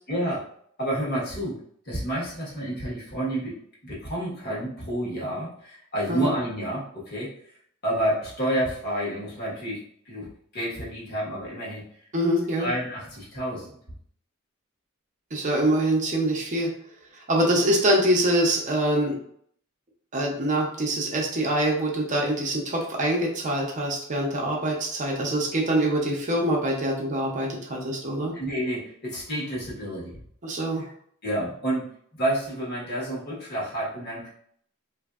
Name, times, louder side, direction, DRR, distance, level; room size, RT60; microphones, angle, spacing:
voice 1, 0.1-0.4 0.8-1.6 1.9-3.5 3.8-7.3 7.8-11.8 12.6-13.8 28.2-30.1 31.2-31.9 32.1-34.3, right 1 dB, 50° left, -6 dB, 1.2 m, -29 dB
voice 2, 12.1-12.7 15.3-16.7 17.3-19.1 20.1-28.3 30.4-30.8, right 1 dB, 35° right, -1 dB, 0.6 m, -24 dB
3.1 x 2.6 x 2.4 m, 0.64 s
head